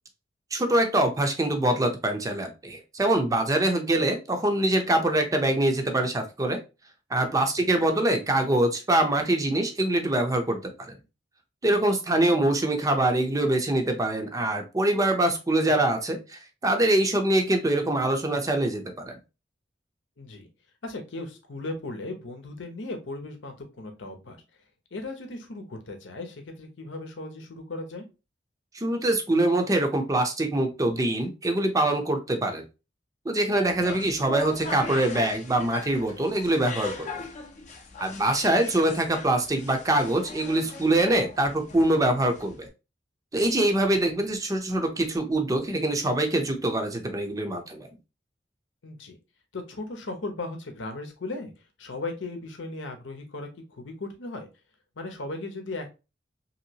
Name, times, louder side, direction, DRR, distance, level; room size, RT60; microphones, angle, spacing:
voice 1, 0.5-6.6 7.1-10.7 11.6-16.2 16.6-19.2 28.7-32.6 33.3-37.1 38.0-42.7 43.3-47.9, right 1 dB, 20° right, 5 dB, 0.5 m, -24 dB
voice 2, 20.2-20.5 20.8-24.4 24.9-28.1 33.8-34.1 48.8-49.2 49.5-51.5 51.8-54.5 55.0-55.9, left 2 dB, 85° left, 5 dB, 0.8 m, -37 dB
sound 1, 33.7-42.7, left 3 dB, 40° left, 0.6 m, -39 dB
3.0 x 2.8 x 2.7 m, 0.29 s
head